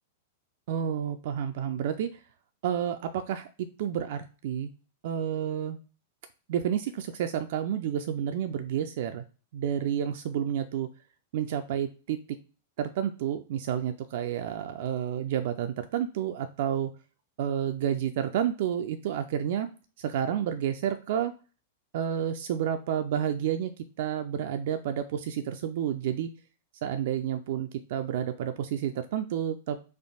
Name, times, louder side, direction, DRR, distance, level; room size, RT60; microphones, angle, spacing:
voice 1, 0.7-2.2 2.6-3.5 3.8-4.7 5.0-5.8 6.5-9.2 9.5-10.9 11.3-12.2 12.8-16.9 17.4-19.7 20.0-21.3 21.9-23.7 24.0-26.3 26.8-29.8, right 9 dB, 50° right, 8 dB, 0.3 m, -30 dB
4.2 x 2.4 x 2.7 m, 0.36 s
figure-of-eight pair, 95°, 0 cm